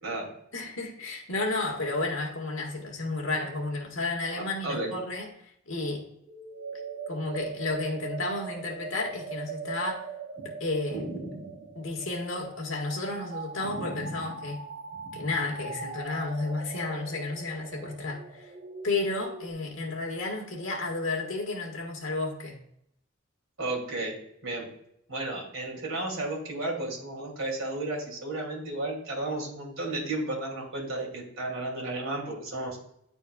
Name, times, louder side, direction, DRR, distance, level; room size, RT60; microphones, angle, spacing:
voice 1, 0.5-5.3 5.7-6.0 7.1-10.0 10.6-11.0 11.7-14.6 15.1-18.5 18.8-22.6, left 2 dB, 65° left, 0 dB, 1.5 m, -32 dB
voice 2, 4.4-4.9 10.4-10.5 10.9-11.7 13.6-14.2 15.0-15.3 23.6-24.2 24.4-24.7 25.1-32.8, right 2 dB, 70° right, -1 dB, 2.5 m, -33 dB
sound 1, 6.2-19.5, right 4 dB, 45° right, 0.9 m, -41 dB
9.7 x 4.3 x 2.3 m, 0.73 s
head